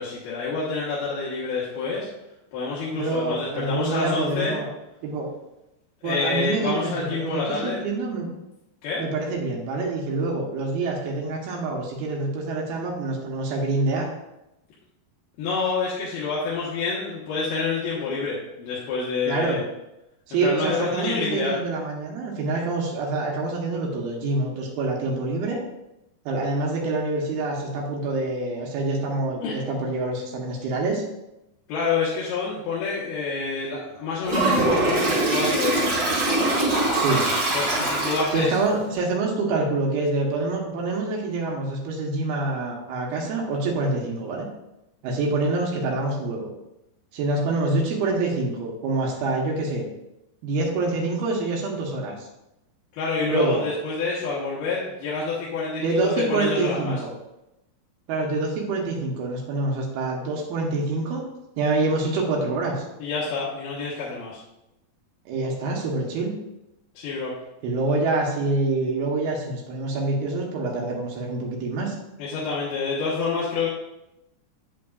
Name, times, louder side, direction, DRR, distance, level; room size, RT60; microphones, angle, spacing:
voice 1, 0.0-2.1 2.5-4.6 6.0-7.8 8.8-9.0 15.4-19.6 20.3-21.6 29.4-29.8 31.7-36.3 37.5-38.6 52.9-57.0 63.0-64.4 66.9-67.3 72.2-73.7, left 4 dB, 80° left, -7 dB, 3.2 m, -28 dB
voice 2, 2.9-4.7 5.0-5.3 6.0-8.3 9.0-14.1 19.3-19.6 20.3-25.6 26.3-31.0 36.9-37.3 38.3-44.5 45.0-46.5 47.1-49.9 50.4-52.3 53.3-53.6 55.8-57.1 58.1-61.2 61.6-62.8 65.3-66.3 67.6-72.0, right 3 dB, 85° right, -1 dB, 3.0 m, -26 dB
Toilet flush, 34.2-38.6, right 2 dB, 35° right, 1.3 m, -23 dB
8.7 x 8.3 x 2.4 m, 0.91 s
omnidirectional pair, 4.3 m